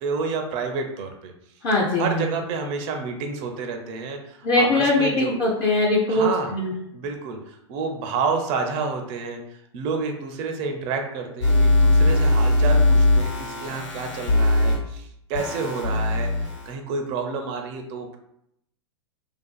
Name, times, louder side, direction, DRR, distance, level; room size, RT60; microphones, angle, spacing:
voice 1, 0.0-1.3 2.0-5.4 6.1-6.5 6.9-9.4 9.7-18.2, right 4 dB, 40° right, 3 dB, 0.4 m, -29 dB
voice 2, 1.6-2.3 4.4-6.7, left 2 dB, 30° left, -3 dB, 0.5 m, -21 dB
sound 1, 11.4-14.8 15.3-16.7, left 2 dB, 85° left, 1.1 m, -20 dB
2.5 x 2.4 x 2.2 m, 0.76 s
hypercardioid pair, 105°, 15 cm